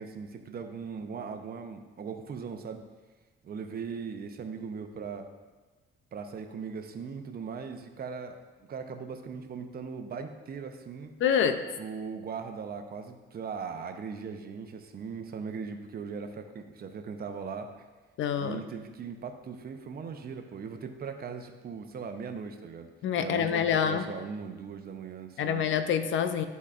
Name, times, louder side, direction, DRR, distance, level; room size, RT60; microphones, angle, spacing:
voice 1, 0.0-2.8 3.4-5.3 6.1-8.4 8.7-11.1 11.8-17.7 18.4-22.9 23.2-25.6, right 5 dB, 50° right, 5 dB, 0.8 m, -39 dB
voice 2, 11.2-11.6 18.2-18.6 23.0-24.1 25.4-26.5, left 8 dB, 75° left, 9 dB, 0.6 m, -26 dB
12.0 x 4.1 x 2.5 m, 1.3 s
cardioid pair, 90°, 20 cm